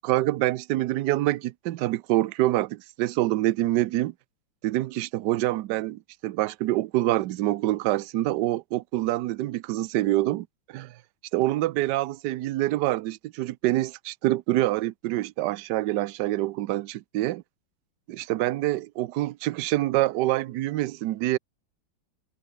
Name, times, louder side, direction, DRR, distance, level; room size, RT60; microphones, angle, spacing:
voice 1, 0.0-4.1 4.6-10.9 11.3-17.4 18.1-21.4, right 16 dB, 70° right, 1.2 m, -26 dB
omnidirectional pair, 2.1 m